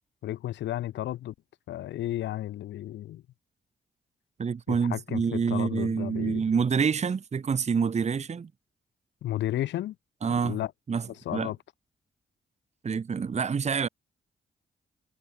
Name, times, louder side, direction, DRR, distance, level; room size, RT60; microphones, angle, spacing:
voice 1, 0.2-1.3 1.7-3.2 4.7-6.5 9.2-10.0 10.3-10.7 11.3-11.6, left 13 dB, 85° left, 0.6 m, -33 dB
voice 2, 4.4-8.5 10.2-10.6 10.9-11.5 12.8-13.9, right 6 dB, 40° right, 0.8 m, -27 dB
cardioid pair, 65°, 18 cm